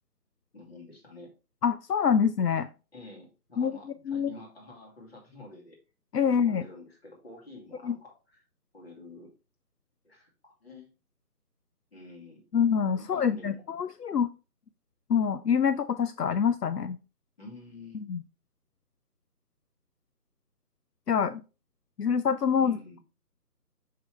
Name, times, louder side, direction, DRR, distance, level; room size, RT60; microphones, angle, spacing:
voice 1, 0.5-1.3 2.9-5.8 6.2-8.4 8.7-9.3 10.0-10.9 11.9-12.4 13.0-13.6 17.4-18.0 22.6-23.0, left 2 dB, 40° left, -1 dB, 2.6 m, -48 dB
voice 2, 1.6-2.7 3.6-3.7 4.1-4.3 6.1-6.6 7.9-8.0 12.5-14.3 15.1-17.0 18.1-18.2 21.1-21.4 22.0-23.0, left 7 dB, 80° left, 12 dB, 0.6 m, -26 dB
6.0 x 5.9 x 3.2 m, 0.32 s
figure-of-eight pair, 160°, 47 cm